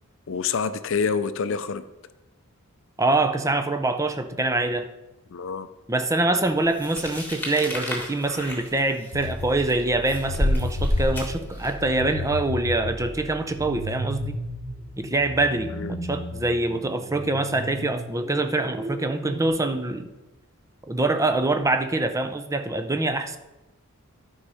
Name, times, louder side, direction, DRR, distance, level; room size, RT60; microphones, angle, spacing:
voice 1, 0.3-1.8 5.3-5.7 15.7-15.9, left 5 dB, 60° left, 12 dB, 0.5 m, -27 dB
voice 2, 3.0-4.9 5.9-14.4 15.0-15.7 16.1-20.1 20.9-23.4, right 2 dB, 15° right, 8 dB, 0.5 m, -24 dB
sound 1, 6.8-11.9, left 1 dB, 10° left, 1.7 m, -28 dB
sound 2, 9.1-19.5, left 1 dB, 45° right, 3.1 m, -35 dB
11.5 x 5.5 x 4.9 m, 1.0 s
head